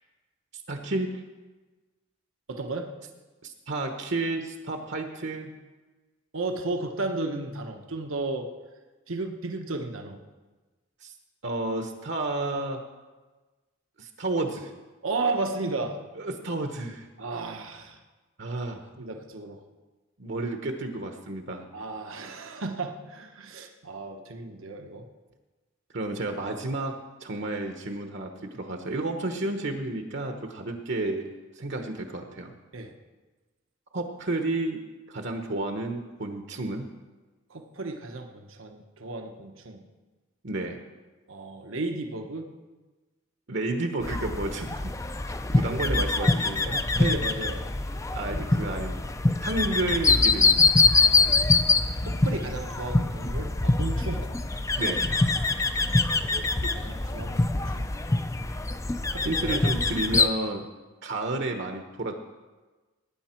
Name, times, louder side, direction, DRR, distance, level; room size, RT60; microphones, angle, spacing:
voice 1, 0.7-1.2 3.4-5.6 11.0-11.1 11.4-12.8 14.0-14.7 16.2-17.1 18.4-18.8 20.2-21.7 25.9-31.3 31.5-32.5 33.9-34.8 35.1-36.9 40.4-40.8 43.5-44.9 45.5-46.9 48.1-49.2 49.4-50.6 54.8-55.1 59.2-60.7 61.0-62.1, right 2 dB, 60° right, 5 dB, 1.0 m, -31 dB
voice 2, 2.5-2.9 6.3-8.5 9.1-10.2 15.0-15.9 17.2-18.0 19.0-19.6 21.7-25.0 32.7-32.9 37.5-39.8 41.3-42.5 47.0-47.6 51.0-51.4 52.0-54.3 56.3-57.9 59.1-59.2 59.5-59.6, right 3 dB, 80° right, 4 dB, 1.1 m, -34 dB
sound 1, 44.0-60.3, left 3 dB, 15° left, 0.4 m, -24 dB
18.5 x 9.3 x 4.4 m, 1.3 s
head